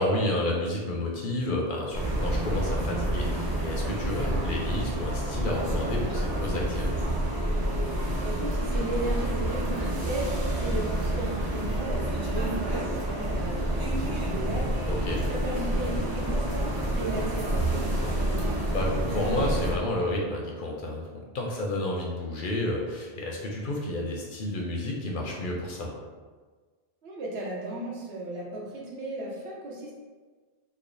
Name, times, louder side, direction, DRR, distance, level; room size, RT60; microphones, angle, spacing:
voice 1, 0.0-7.0 14.9-15.2 18.7-25.9, left 1 dB, 60° left, -1 dB, 0.7 m, -30 dB
sound 1, 1.9-19.8, right 1 dB, 30° right, 0.4 m, -28 dB
voice 2, 8.2-14.8 15.3-18.5 27.0-29.9, right 1 dB, 75° right, -3 dB, 1.0 m, -35 dB
3.2 x 2.1 x 3.8 m, 1.4 s
omnidirectional pair, 1.1 m